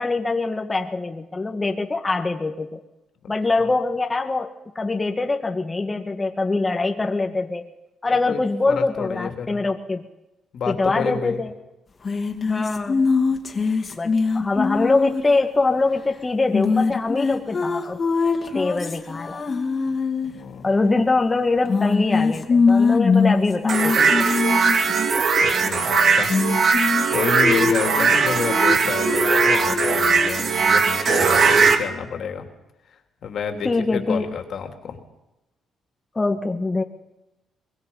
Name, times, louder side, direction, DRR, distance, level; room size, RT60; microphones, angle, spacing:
voice 1, 0.0-2.8 3.3-4.5 4.7-7.6 8.0-10.0 10.7-11.5 12.5-13.0 13.9-18.0 18.5-19.4 20.6-24.2 33.6-34.4 36.1-36.8, left 3 dB, 20° left, 3 dB, 1.6 m, -23 dB
voice 2, 8.7-9.6 10.5-11.4 20.3-20.7 25.4-26.3 26.6-32.5 33.2-35.0, left 6 dB, 65° left, 5 dB, 3.0 m, -29 dB
sound 1, 12.0-15.4 16.5-20.3 21.7-24.8 26.1-27.1 27.4-30.3, left 4 dB, 40° left, 2.5 m, -22 dB
sound 2, 23.7-31.8, right 5 dB, 55° right, 2.6 m, -19 dB
23.5 x 21.0 x 5.6 m, 0.96 s
cardioid pair, 90°, 0 cm